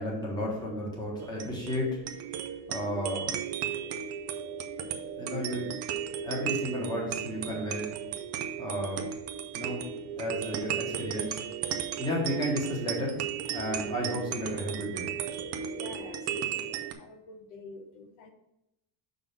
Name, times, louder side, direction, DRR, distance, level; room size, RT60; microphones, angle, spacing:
voice 1, 0.0-1.9 2.7-3.4 5.2-5.6 6.2-7.9 8.6-9.1 9.5-9.8 10.2-11.4 12.0-13.2 13.5-15.0, equal, 10° left, -3 dB, 1.4 m, -33 dB
sound 1, 1.2-16.9, right 9 dB, 35° right, 0.4 m, -35 dB
voice 2, 15.7-18.3, left 4 dB, 65° left, 5 dB, 0.9 m, -47 dB
6.2 x 3.9 x 5.3 m, 0.85 s
cardioid pair, 180°, 45 cm